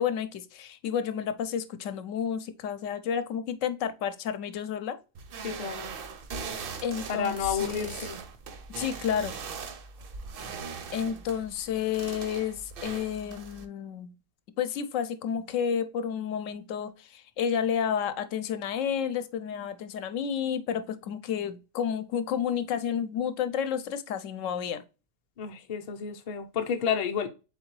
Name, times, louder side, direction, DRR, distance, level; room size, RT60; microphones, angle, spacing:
voice 1, 0.0-5.0 6.8-8.0 8.8-9.3 10.9-14.1 14.6-24.8, left 8 dB, 80° left, 0.9 m, -31 dB
sound 1, 5.1-13.6, right 5 dB, 55° right, 0.7 m, -40 dB
voice 2, 5.4-5.9 7.1-8.2 25.4-27.3, left 7 dB, 45° left, 0.5 m, -31 dB
4.0 x 3.6 x 3.0 m
omnidirectional pair, 1.3 m